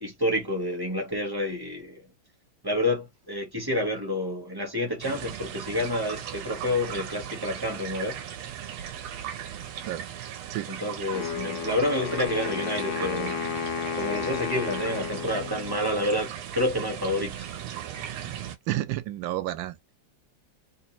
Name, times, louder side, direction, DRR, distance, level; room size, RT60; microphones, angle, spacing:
voice 1, 0.0-2.0 2.6-8.2 10.7-13.5 14.0-17.5, left 1 dB, 15° right, 0.8 m, -29 dB
sound 1, 5.0-18.6, right 10 dB, 90° right, 1.6 m, -38 dB
Wind instrument woodwind instrument, 11.1-16.1, left 7 dB, 90° left, 0.6 m, -33 dB
voice 2, 18.7-19.8, right 14 dB, 75° right, 1.2 m, -30 dB
3.4 x 3.3 x 2.9 m
omnidirectional pair, 2.4 m